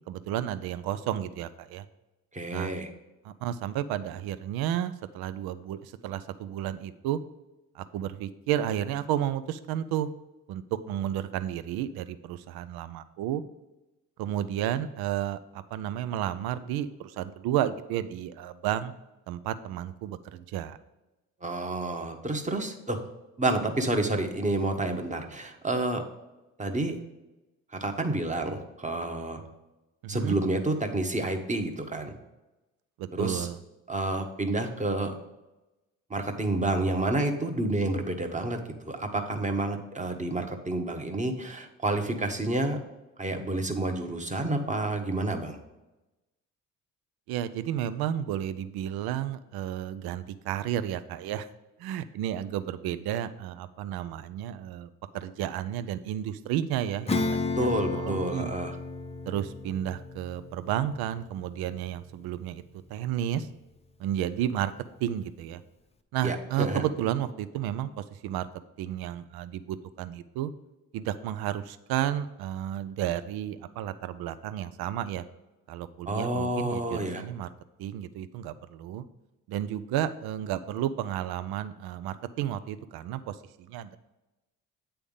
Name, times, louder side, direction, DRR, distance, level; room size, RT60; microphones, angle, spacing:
voice 1, 0.1-1.8 2.5-2.7 3.2-7.2 7.8-10.1 10.5-13.4 14.2-18.9 19.3-20.8 30.0-30.4 33.0-33.6 47.3-51.5 51.8-54.9 55.1-57.7 57.9-58.5 59.3-62.6 62.9-63.5 64.0-64.7 65.0-65.6 66.1-68.5 68.8-70.5 70.9-75.2 75.7-77.5 77.8-79.0 79.5-84.0, right 11 dB, 70° right, 13 dB, 0.6 m, -32 dB
voice 2, 2.3-2.9 21.4-23.0 23.4-26.0 26.6-26.9 27.8-29.4 30.1-32.1 33.1-33.5 33.9-35.1 36.1-38.6 38.9-42.8 43.2-45.6 57.6-58.8 66.2-66.8 76.1-77.2, right 2 dB, 20° right, 5 dB, 1.1 m, -29 dB
Acoustic guitar / Strum, 57.1-63.1, left 3 dB, 15° left, 0.7 m, -34 dB
8.5 x 3.4 x 5.4 m, 1.0 s
hypercardioid pair, 60°, 39 cm